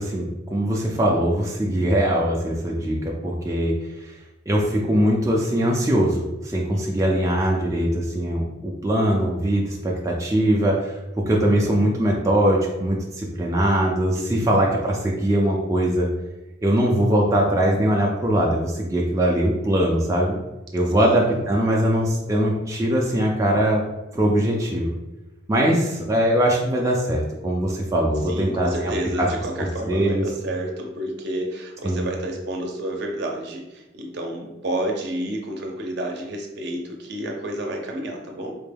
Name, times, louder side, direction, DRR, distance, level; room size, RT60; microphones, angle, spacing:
voice 1, 0.0-4.2 4.5-11.0 11.3-16.1 16.6-20.4 20.7-23.8 24.1-24.9 25.5-28.9 29.2-29.3 29.6-30.3 31.8-32.0, right 1 dB, 15° right, -2 dB, 0.4 m, -21 dB
voice 2, 6.7-7.2 14.2-14.6 21.0-21.2 28.3-38.6, right 1 dB, 55° right, 2 dB, 0.6 m, -30 dB
4.3 x 2.2 x 3.3 m, 1.0 s
head